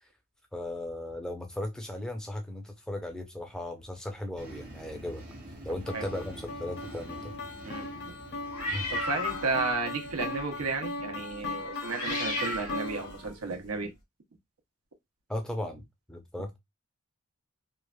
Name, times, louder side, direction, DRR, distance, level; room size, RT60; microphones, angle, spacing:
voice 1, 0.5-5.2 5.6-7.3 8.7-8.9 15.3-16.6, left 1 dB, 5° left, 0.6 m, -37 dB
sound 1, 4.4-10.8, right 1 dB, 35° right, 1.0 m, -47 dB
sound 2, 5.9-13.3, left 3 dB, 50° left, 0.6 m, -38 dB
sound 3, 8.5-9.7 10.1-10.4 11.6-13.4, left 1 dB, 80° left, 1.2 m, -35 dB
voice 2, 8.9-13.9, right 4 dB, 80° right, 0.8 m, -33 dB
3.1 x 2.4 x 2.2 m
head